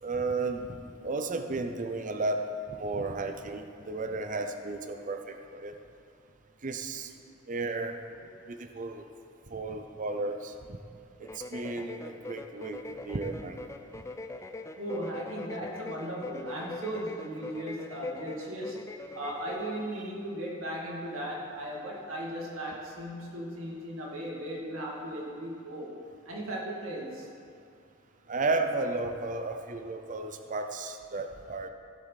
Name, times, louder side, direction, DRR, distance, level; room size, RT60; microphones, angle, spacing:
voice 1, 0.0-5.7 6.6-7.1 7.5-8.0 8.5-9.0 9.5-10.8 11.2-13.6 28.3-31.7, right 3 dB, 40° right, 7 dB, 0.6 m, -33 dB
sound 1, 11.2-19.8, left 3 dB, 15° left, 0.4 m, -42 dB
voice 2, 14.8-18.8 19.1-25.9 26.3-27.3, right 1 dB, 90° right, -3 dB, 2.4 m, -37 dB
16.0 x 7.8 x 4.1 m, 2.4 s
head